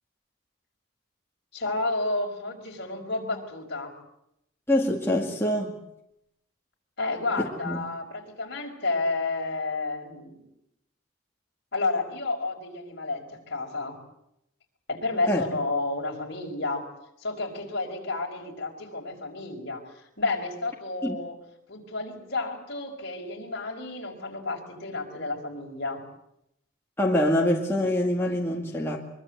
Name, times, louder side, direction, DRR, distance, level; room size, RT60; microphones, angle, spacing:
voice 1, 1.5-3.9 7.0-10.5 11.7-14.0 14.9-16.9 17.2-19.8 20.2-21.3 21.7-26.0, left 3 dB, 50° left, 1 dB, 5.4 m, -31 dB
voice 2, 4.7-5.8 7.4-7.8 15.3-15.4 21.0-21.2 27.0-29.0, left 1 dB, 10° left, -2 dB, 2.2 m, -25 dB
24.0 x 23.5 x 8.1 m, 0.80 s
head